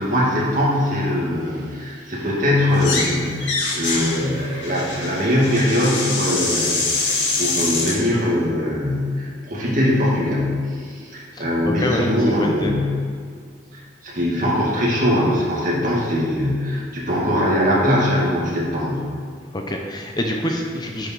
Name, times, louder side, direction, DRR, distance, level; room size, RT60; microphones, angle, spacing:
voice 1, 0.0-13.0 13.7-19.1, left 1 dB, 45° right, -5 dB, 2.4 m, -21 dB
sound 1, 2.7-3.1 3.4-8.0, left 3 dB, 75° left, 2.3 m, -24 dB
voice 2, 11.3-12.7 19.5-21.1, left 1 dB, 25° left, 2 dB, 0.7 m, -26 dB
10.0 x 6.4 x 4.7 m, 2.1 s
head